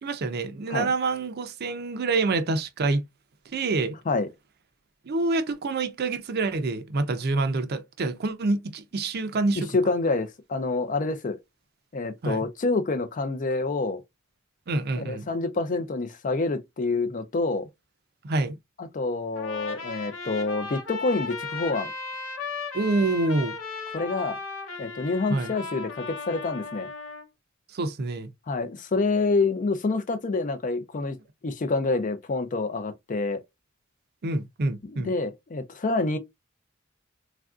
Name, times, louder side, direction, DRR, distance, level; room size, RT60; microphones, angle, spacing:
voice 1, 0.0-3.0 3.5-3.9 5.1-9.7 12.2-12.4 14.7-15.2 18.2-18.6 22.7-23.5 25.3-25.5 27.7-28.3 34.2-35.1, right 3 dB, 50° right, 0.5 m, -27 dB
voice 2, 9.6-11.4 11.9-14.0 15.0-17.7 18.8-21.9 23.9-24.4 24.8-26.9 28.5-31.2 31.4-33.4 34.8-36.2, left 3 dB, 40° left, 0.5 m, -27 dB
Trumpet, 19.4-27.3, left 4 dB, 80° left, 0.9 m, -36 dB
3.4 x 2.5 x 2.3 m
head